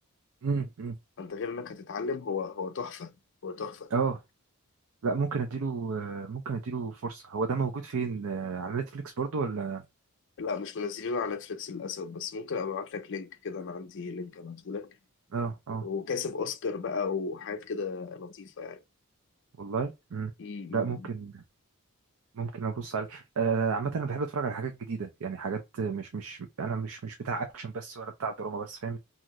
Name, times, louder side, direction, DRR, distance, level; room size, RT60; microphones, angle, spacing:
voice 1, 0.4-0.9 3.9-4.2 5.0-9.8 15.3-15.8 19.6-20.3 20.7-21.4 22.3-29.0, right 5 dB, 70° right, 0.5 m, -32 dB
voice 2, 1.2-3.1 3.4-3.9 10.4-14.9 15.8-18.8 20.4-21.1, left 5 dB, 55° left, 0.5 m, -35 dB
2.8 x 2.4 x 3.0 m
head